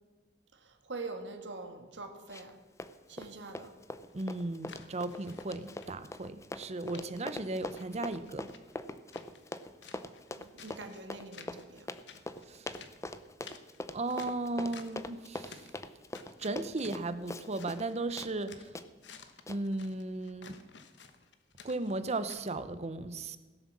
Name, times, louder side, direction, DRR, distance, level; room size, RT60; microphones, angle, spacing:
voice 1, 0.5-2.6 3.1-3.7 6.9-7.1 10.4-11.9, right 3 dB, 75° right, 7 dB, 1.7 m, -44 dB
Run, 2.3-2.5 2.8-17.9 18.2-18.3 18.7-18.9 19.5-19.6, left 2 dB, 15° left, 0.6 m, -42 dB
sound 1, 4.1-6.3 6.6-7.0 7.4-9.6 9.8-11.0 11.3-11.8 12.1-15.1 15.3-15.8 16.1-18.0 18.3-22.4, left 6 dB, 70° left, 1.2 m, -54 dB
voice 2, 4.1-8.5 12.5-12.7 13.9-15.7 16.4-18.7 19.5-20.6 21.6-23.4, right 2 dB, 35° right, 13 dB, 0.7 m, -36 dB
16.5 x 7.6 x 7.3 m, 1.3 s
head